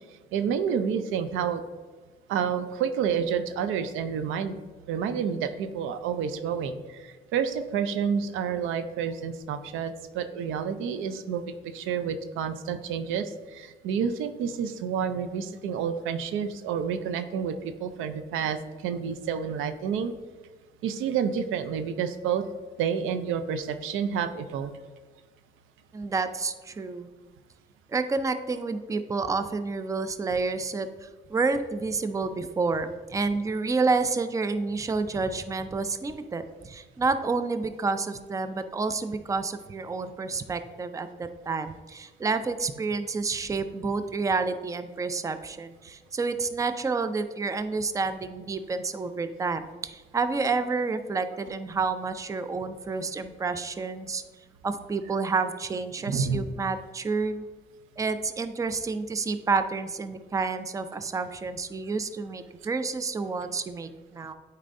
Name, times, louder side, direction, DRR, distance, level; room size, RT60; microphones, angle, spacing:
voice 1, 0.1-1.6 2.3-4.6 4.9-20.1 20.8-22.4 22.8-24.8 56.1-56.4, right 7 dB, 90° right, 9 dB, 0.5 m, -29 dB
voice 2, 25.9-27.1 27.9-54.2 54.6-57.4 58.0-64.3, right 4 dB, 15° right, 10 dB, 0.4 m, -29 dB
8.8 x 4.2 x 2.6 m, 1.4 s
cardioid pair, 90°, 20 cm